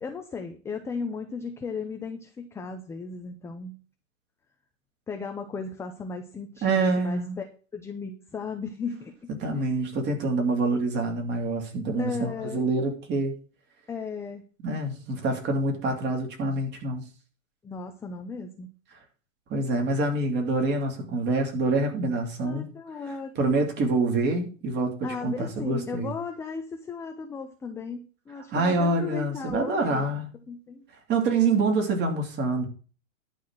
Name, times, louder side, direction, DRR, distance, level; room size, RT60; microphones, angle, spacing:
voice 1, 0.0-3.7 5.1-7.5 7.7-9.8 12.0-12.6 13.9-14.4 17.6-18.7 22.4-23.6 25.0-30.1 30.5-30.8, left 5 dB, 5° left, 0.5 m, -36 dB
voice 2, 6.6-7.4 9.4-13.3 14.6-17.0 19.5-22.7 23.4-26.1 28.5-30.2 31.1-32.7, right 3 dB, 25° right, 2.8 m, -26 dB
11.5 x 4.3 x 7.5 m
hypercardioid pair, 140°, 39 cm